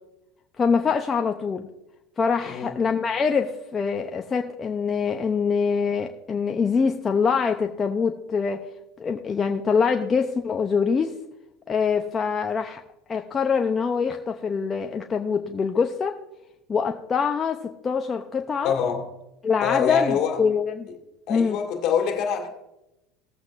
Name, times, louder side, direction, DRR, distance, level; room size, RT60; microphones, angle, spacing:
voice 1, 0.6-1.7 2.2-8.6 9.0-11.1 11.7-12.8 13.1-16.2 16.7-18.8 19.4-20.9 21.3-21.6, left 5 dB, 25° left, 0.7 m, -24 dB
voice 2, 2.4-2.8 18.6-19.1 19.6-20.4 21.3-22.5, left 7 dB, 55° left, 2.1 m, -25 dB
17.5 x 8.0 x 2.6 m
supercardioid pair, 105°, 0 cm